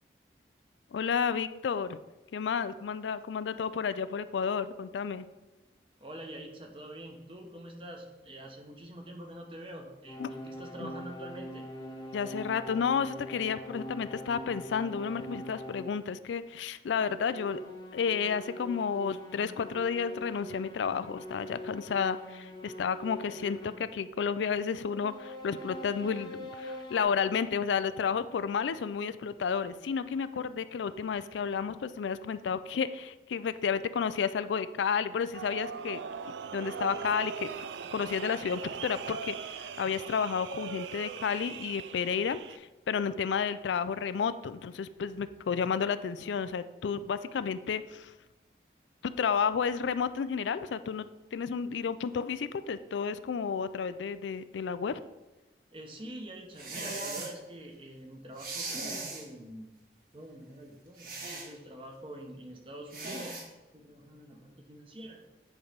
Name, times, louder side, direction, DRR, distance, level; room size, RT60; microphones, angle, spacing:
voice 1, 0.9-2.0 2.3-5.3 10.2-10.3 10.8-10.9 12.1-17.6 17.9-36.0 36.5-48.1 49.0-55.0, left 6 dB, 90° left, 14 dB, 0.4 m, -31 dB
voice 2, 6.0-11.6 55.7-59.7 60.1-63.4 63.7-65.2, right 1 dB, 30° right, 2 dB, 1.0 m, -46 dB
sound 1, 10.1-16.0 17.0-23.9 24.8-27.0, equal, 25° left, 1.0 m, -43 dB
sound 2, 35.3-42.6, right 6 dB, 85° right, 0.4 m, -40 dB
sound 3, 56.6-57.3 58.4-59.2 61.0-61.5 62.9-63.4, right 3 dB, 50° right, 1.6 m, -38 dB
9.5 x 3.3 x 5.2 m, 1.1 s
head